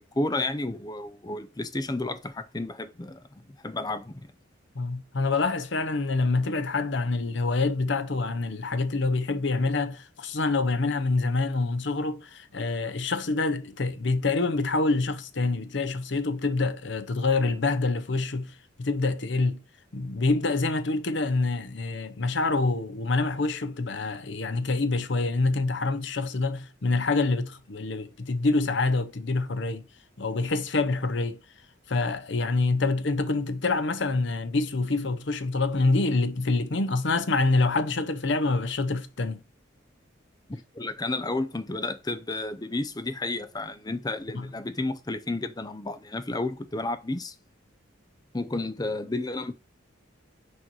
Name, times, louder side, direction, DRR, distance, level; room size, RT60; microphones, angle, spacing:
voice 1, 0.0-3.2 3.6-4.3 40.5-47.3 48.3-49.5, left 2 dB, 20° left, 0.6 m, -31 dB
voice 2, 4.8-18.5 18.8-19.6 19.9-29.8 30.2-31.4 31.9-39.4 44.3-44.5, left 3 dB, 60° left, 0.8 m, -26 dB
6.4 x 4.4 x 4.6 m
head